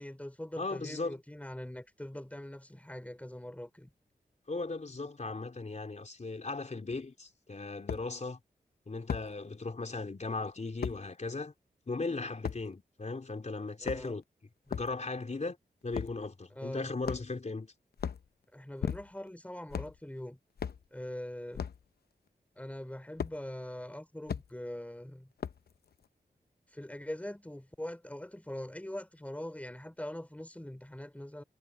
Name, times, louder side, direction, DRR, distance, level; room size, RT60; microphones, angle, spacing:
voice 1, 0.0-3.9 13.8-14.1 16.5-16.9 18.5-20.4 20.9-21.7 22.6-25.3 26.7-31.4, left 1 dB, 10° left, 3.1 m, -42 dB
voice 2, 0.6-1.2 4.5-8.4 8.9-11.5 11.9-14.2 14.7-15.6 15.8-17.7, left 3 dB, 45° left, 3.7 m, -37 dB
sound 1, 6.9-7.0 7.9-8.1 9.1-9.3 10.8-11.0 12.4-12.6 13.7-14.2 14.7-14.9 15.9-16.2 17.0-17.5 17.9-18.3 18.8-19.3 19.7-20.0 20.6-20.8 21.5-21.8 23.2-23.4 24.3-24.5 25.4-25.7, left 7 dB, 80° left, 0.7 m, -36 dB
cardioid pair, 55°, 16 cm